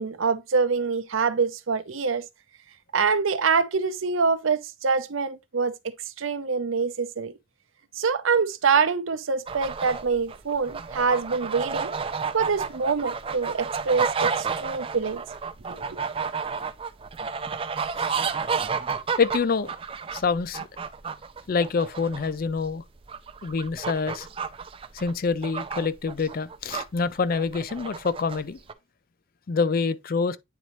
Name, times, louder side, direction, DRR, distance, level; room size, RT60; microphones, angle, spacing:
voice 1, 0.0-2.2 2.9-7.3 8.0-11.9 12.3-15.2 15.7-16.0, right 5 dB, 75° right, 0.7 m, -25 dB
sound 1, 9.5-26.8 27.3-28.4 28.7-28.8, right 5 dB, 25° right, 0.4 m, -31 dB
voice 2, 19.2-19.7 20.1-20.7 21.5-22.8 23.4-24.3 24.9-28.6 29.5-30.4, left 4 dB, 45° left, 0.4 m, -26 dB
9.1 x 4.0 x 3.0 m
head